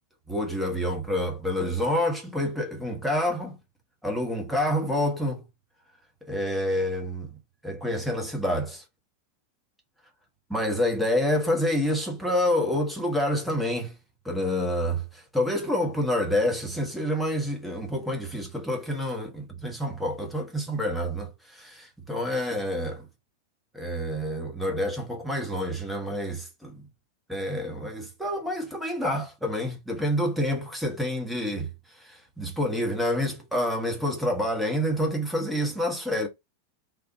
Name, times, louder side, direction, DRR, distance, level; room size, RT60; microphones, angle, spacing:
voice 1, 0.3-3.6 4.0-5.5 6.2-7.3 7.6-8.8 10.5-13.9 14.2-23.1 23.7-26.8 27.3-31.7 32.0-36.3, left 1 dB, ahead, 1.1 m, -28 dB
3.5 x 2.5 x 2.7 m
figure-of-eight pair, 90°, 0 cm